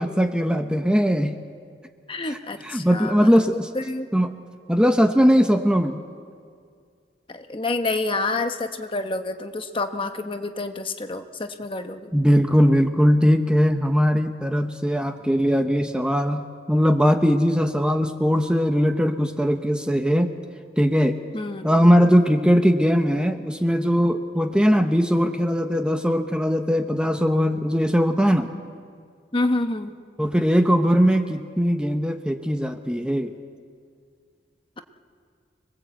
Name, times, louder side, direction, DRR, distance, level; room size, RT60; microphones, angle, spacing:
voice 1, 0.0-1.3 2.2-3.7 4.1-4.3 4.7-6.0 12.1-20.3 20.8-21.2 21.6-28.5 30.2-33.3, equal, 5° right, 6 dB, 0.8 m, -20 dB
voice 2, 2.1-4.1 7.3-12.1 21.3-21.6 29.3-29.9, left 2 dB, 30° left, 7 dB, 1.0 m, -28 dB
25.5 x 20.5 x 8.1 m, 2.1 s
head